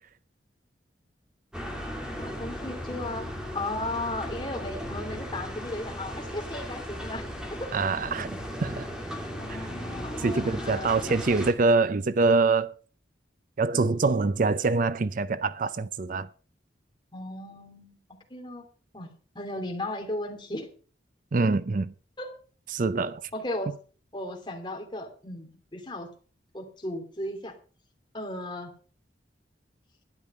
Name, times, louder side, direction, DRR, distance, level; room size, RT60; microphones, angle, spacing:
sound 1, 1.5-11.5, equal, 5° right, 2.6 m, -36 dB
voice 1, 2.2-3.3 3.5-7.3 7.6-7.8 9.1-11.4 17.1-18.0 18.3-18.6 18.9-20.7 22.2-22.3 23.3-23.8 24.1-26.1 26.5-27.5 28.1-28.7, left 1 dB, 25° left, 2.9 m, -36 dB
voice 2, 7.7-8.9 9.5-9.6 10.2-12.7 13.6-16.3 21.3-21.9 22.7-23.2, right 3 dB, 50° right, 0.5 m, -25 dB
12.0 x 10.5 x 5.5 m
head